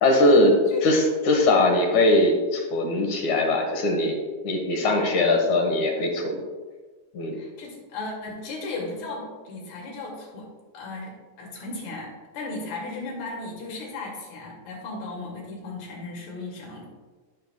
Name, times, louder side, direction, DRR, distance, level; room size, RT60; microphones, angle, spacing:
voice 1, 0.0-0.5 0.8-6.4 7.1-7.4, left 2 dB, 65° left, 2 dB, 2.1 m, -21 dB
voice 2, 7.3-10.5 10.7-16.9, left 3 dB, 85° left, -2 dB, 4.2 m, -36 dB
17.5 x 6.6 x 2.2 m, 1.3 s
omnidirectional pair, 4.5 m